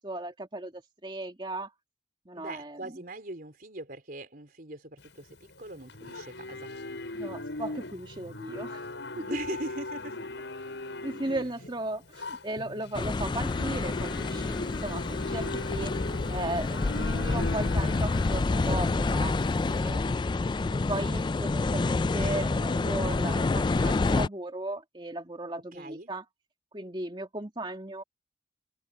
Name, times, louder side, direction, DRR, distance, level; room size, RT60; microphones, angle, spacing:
voice 1, 0.0-1.7 2.3-3.0 7.1-8.8 9.2-9.3 11.0-15.9 16.3-19.3 19.8-20.2 20.7-26.2 26.7-28.0, right 1 dB, 25° right, 2.4 m, -36 dB
voice 2, 2.3-6.7 9.3-10.2 19.7-20.0 25.7-26.1, right 2 dB, 50° right, 4.3 m, -41 dB
Livestock farm animals working animals, 5.0-19.7, left 2 dB, 80° left, 6.9 m, -39 dB
sound 1, 12.9-24.3, left 3 dB, 25° left, 0.3 m, -28 dB
head